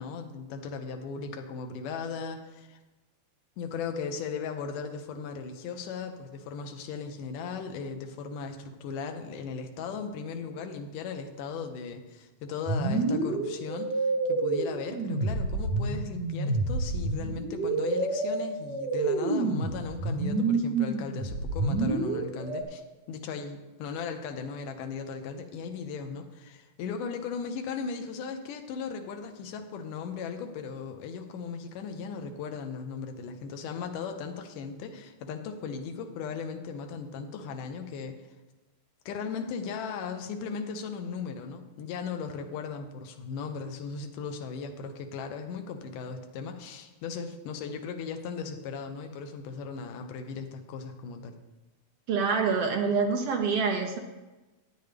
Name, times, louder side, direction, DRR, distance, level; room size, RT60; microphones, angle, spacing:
voice 1, 0.0-2.8 3.6-22.8 23.1-38.2 39.1-51.4, left 5 dB, 85° left, 5 dB, 2.4 m, -37 dB
sound 1, 12.7-22.6, right 3 dB, 55° right, 1.2 m, -28 dB
voice 2, 52.1-54.0, right 5 dB, 70° right, 3 dB, 1.5 m, -26 dB
12.5 x 9.3 x 3.4 m, 1.1 s
omnidirectional pair, 3.6 m